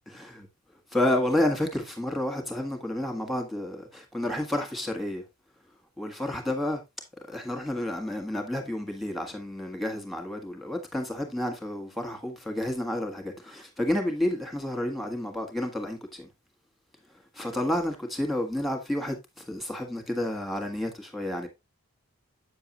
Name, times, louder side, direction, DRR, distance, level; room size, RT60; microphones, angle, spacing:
voice 1, 0.1-0.5 0.9-5.2 6.0-6.8 7.3-16.3 17.4-19.1 19.5-21.5, left 1 dB, ahead, 1.5 m, -30 dB
8.3 x 6.8 x 2.9 m
head